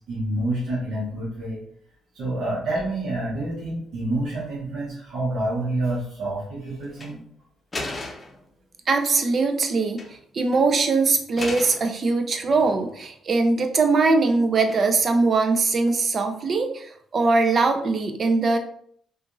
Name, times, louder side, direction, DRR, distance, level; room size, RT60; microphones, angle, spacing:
voice 1, 0.1-1.6 2.1-7.2, right 1 dB, 75° right, -6 dB, 0.9 m, -28 dB
sound 1, 6.9-7.1 7.7-8.4 9.7-10.2 10.5-10.7 11.4-11.9 12.4-13.0 14.7-15.1, left 2 dB, 30° left, 0.6 m, -35 dB
voice 2, 8.9-18.6, right 3 dB, 45° right, 5 dB, 0.4 m, -21 dB
2.8 x 2.4 x 2.5 m, 0.66 s
cardioid pair, 90°, 0 cm